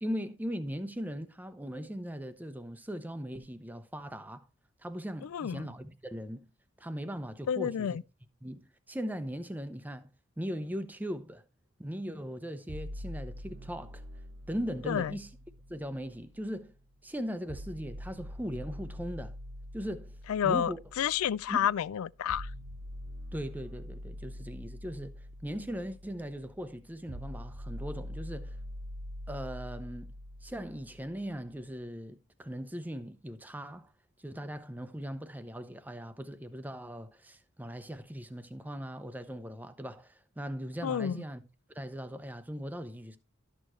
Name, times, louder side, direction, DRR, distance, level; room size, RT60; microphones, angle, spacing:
voice 1, 0.0-4.4 4.8-6.5 6.8-8.0 8.4-10.1 10.4-11.4 11.8-14.0 14.5-15.3 15.7-16.7 17.0-19.4 19.7-20.2 20.4-20.8 21.5-21.6 23.3-28.6 29.3-30.1 30.4-33.9 34.2-41.4 41.7-43.2, equal, 10° right, 0.6 m, -39 dB
voice 2, 5.2-5.7 7.5-8.0 14.9-15.1 20.3-22.5 40.8-41.2, left 9 dB, 80° left, 0.3 m, -30 dB
sound 1, 12.7-16.7 17.5-31.5, equal, 55° right, 1.0 m, -44 dB
12.5 x 6.5 x 3.1 m
head